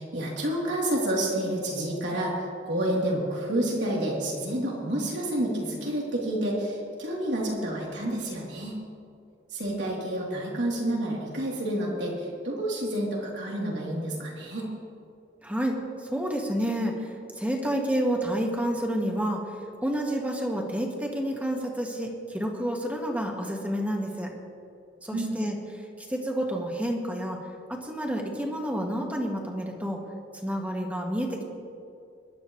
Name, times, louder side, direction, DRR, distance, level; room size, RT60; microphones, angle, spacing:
voice 1, 0.0-8.8 9.5-14.7 25.1-25.4, right 1 dB, 80° right, -4 dB, 3.6 m, -29 dB
voice 2, 15.4-19.4 19.8-24.3 25.0-25.6 26.0-27.4 27.7-30.0 30.4-31.4, equal, 10° right, 0 dB, 1.8 m, -29 dB
25.0 x 12.0 x 3.3 m, 2.4 s
head